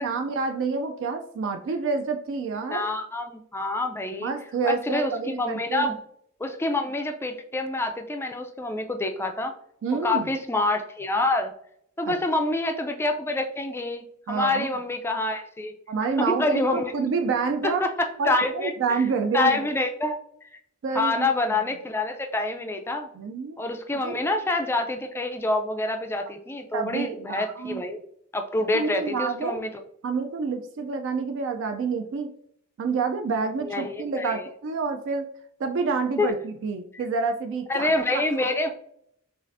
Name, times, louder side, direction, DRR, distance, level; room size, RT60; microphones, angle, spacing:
voice 1, 0.0-2.9 4.2-5.9 9.8-10.3 12.0-12.2 12.4-12.6 14.3-14.7 15.9-17.8 18.2-19.7 20.8-21.6 23.1-23.6 23.9-24.2 26.7-27.8 28.7-29.6 30.0-32.3 32.8-35.3 35.6-38.5, right 4 dB, 60° right, 6 dB, 0.4 m, -28 dB
voice 2, 2.7-4.3 4.6-6.0 6.4-9.5 10.0-11.5 12.0-15.7 16.2-16.9 17.6-18.7 19.3-20.2 20.9-23.1 23.6-28.0 28.3-29.7 33.6-34.5 36.2-36.3 37.7-38.7, left 2 dB, 10° left, 5 dB, 0.3 m, -27 dB
6.5 x 2.4 x 2.5 m, 0.71 s
head